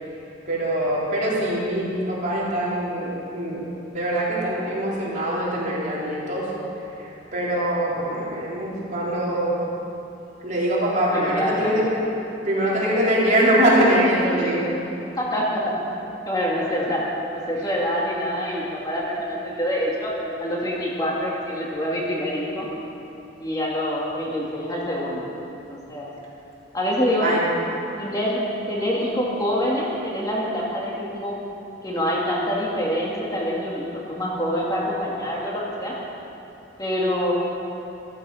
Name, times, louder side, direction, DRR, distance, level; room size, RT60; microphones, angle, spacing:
voice 1, 0.5-3.6 3.9-6.5 7.0-9.6 10.4-11.9 12.4-14.7 27.2-27.4, right 1 dB, 40° right, -6 dB, 3.9 m, -23 dB
voice 2, 11.1-11.7 15.2-15.8 16.3-17.0 17.3-20.1 20.4-22.7 23.4-25.2 25.7-26.1 26.7-27.3 28.0-28.4 28.7-31.4 31.8-35.9 36.8-37.3, equal, 20° left, -5 dB, 2.2 m, -26 dB
14.5 x 14.0 x 5.7 m, 2.9 s
head